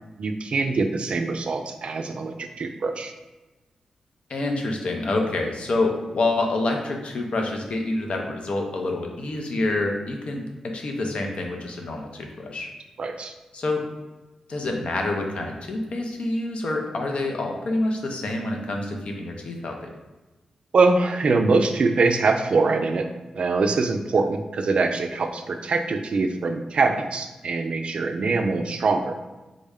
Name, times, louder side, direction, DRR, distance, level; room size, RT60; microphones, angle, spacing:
voice 1, 0.2-3.1 13.0-13.3 20.7-23.1 23.3-29.2, right 3 dB, 60° right, 6 dB, 0.3 m, -23 dB
voice 2, 4.3-12.7 13.5-13.9 14.5-19.8, left 2 dB, 65° left, 2 dB, 0.6 m, -27 dB
3.6 x 2.1 x 3.5 m, 1.1 s
cardioid pair, 55°, 2 cm